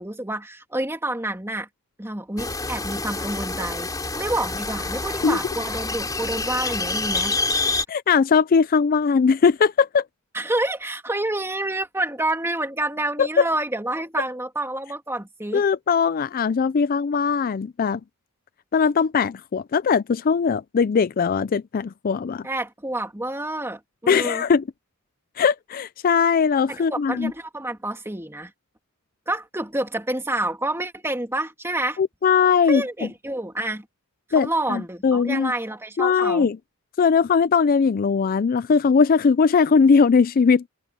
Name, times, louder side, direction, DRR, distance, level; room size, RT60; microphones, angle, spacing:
voice 1, 0.0-1.7 2.0-7.4 10.3-15.6 22.4-24.4 26.7-28.5 29.3-32.0 32.6-33.9 34.3-36.5, right 1 dB, 10° right, 2.8 m, -28 dB
sound 1, 2.4-7.8, left 3 dB, 15° left, 3.8 m, -27 dB
voice 2, 7.9-10.0 13.2-13.4 15.5-18.0 18.7-22.5 24.1-24.6 25.4-27.3 32.0-32.8 34.3-35.5 36.0-36.6 37.0-40.7, left 5 dB, 40° left, 0.4 m, -20 dB
head